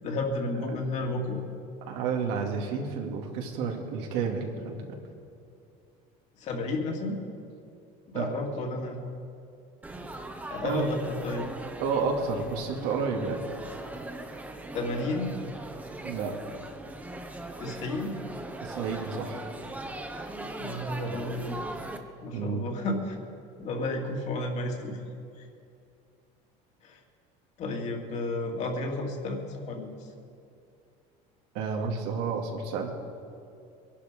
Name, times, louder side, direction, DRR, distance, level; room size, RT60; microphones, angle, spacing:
voice 1, 0.0-1.4 6.4-7.2 8.1-9.1 10.5-11.5 14.7-15.4 17.6-18.2 20.6-21.6 22.2-23.2 23.6-25.0 25.4-25.5 26.8-27.0 27.6-29.9, left 2 dB, 45° left, 1 dB, 2.4 m, -32 dB
voice 2, 1.9-5.0 8.1-8.3 10.6-10.9 11.8-13.4 16.0-16.4 18.6-19.4 22.3-22.6 31.5-32.9, right 5 dB, 85° right, 1 dB, 2.4 m, -30 dB
Laughter / Chatter / Crowd, 9.8-22.0, right 2 dB, 10° right, 1.1 m, -40 dB
22.5 x 11.5 x 5.1 m, 2.5 s
cardioid pair, 145°, 16 cm